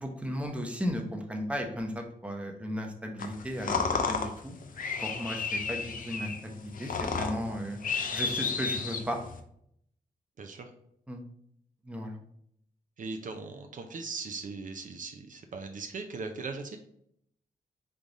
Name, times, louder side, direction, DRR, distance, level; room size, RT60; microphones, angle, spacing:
voice 1, 0.0-3.8 4.1-4.5 5.0-7.8 8.1-9.2 11.1-11.2 11.9-12.2, equal, 10° right, 3 dB, 0.8 m, -35 dB
sound 1, 3.2-9.4, left 5 dB, 60° left, 0.6 m, -32 dB
voice 2, 10.4-10.7 13.0-16.8, right 4 dB, 55° right, 5 dB, 0.5 m, -39 dB
3.7 x 3.3 x 4.0 m, 0.70 s
cardioid pair, 75°, 16 cm